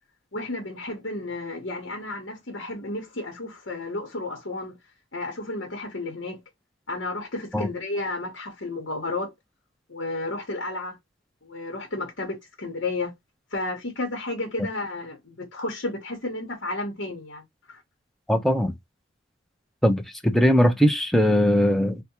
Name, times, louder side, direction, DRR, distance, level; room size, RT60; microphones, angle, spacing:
voice 1, 0.3-4.8 5.1-6.4 6.9-9.3 9.9-11.0 11.4-13.1 13.5-17.8, left 2 dB, 65° left, 1.0 m, -32 dB
voice 2, 18.3-18.7 19.8-22.0, equal, ahead, 0.5 m, -20 dB
3.3 x 2.1 x 2.8 m
head